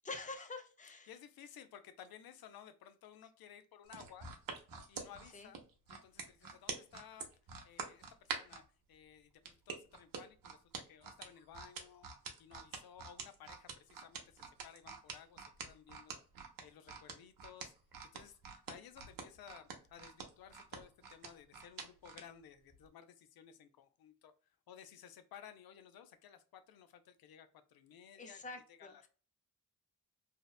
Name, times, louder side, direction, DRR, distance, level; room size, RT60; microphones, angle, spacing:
voice 1, 0.0-1.1 5.3-5.5 28.2-28.9, left 3 dB, 25° left, 6 dB, 0.4 m, -46 dB
voice 2, 1.1-4.3 4.9-5.6 5.9-7.3 7.6-8.6 8.9-12.1 12.4-16.2 16.6-17.7 18.1-18.4 18.7-24.3 24.7-28.4 28.7-29.1, left 9 dB, 85° left, 11 dB, 0.5 m, -57 dB
sound 1, 3.9-8.6 9.5-22.3 22.7-22.9, right 5 dB, 70° right, 0.7 m, -46 dB
2.8 x 2.1 x 2.2 m, 0.39 s
wide cardioid pair, 150°, 35 cm